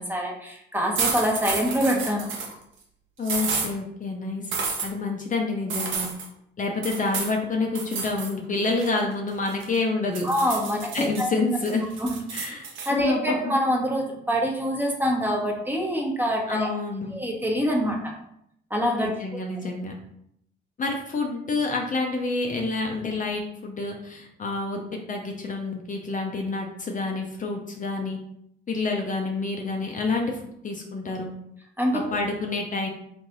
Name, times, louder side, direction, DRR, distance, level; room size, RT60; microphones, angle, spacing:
voice 1, 0.0-2.3 10.2-11.3 12.0-12.2 12.8-16.7 17.1-18.1 18.7-19.1 31.8-32.0, equal, 10° right, -1 dB, 1.2 m, -25 dB
sound 1, 1.0-2.5 3.2-3.7 4.5-4.9 5.7-6.3 6.8-7.4 7.8-8.3 8.7-9.8 10.2-11.2 11.7-12.9, right 5 dB, 75° right, 1.1 m, -30 dB
voice 2, 3.2-4.5 4.8-6.1 6.6-10.3 10.9-11.9 12.3-13.5 16.5-17.1 19.0-19.9 20.8-28.2 28.7-31.3 31.9-32.9, left 3 dB, 40° left, 2 dB, 0.8 m, -28 dB
3.4 x 3.2 x 4.0 m, 0.73 s
cardioid pair, 90°, 20 cm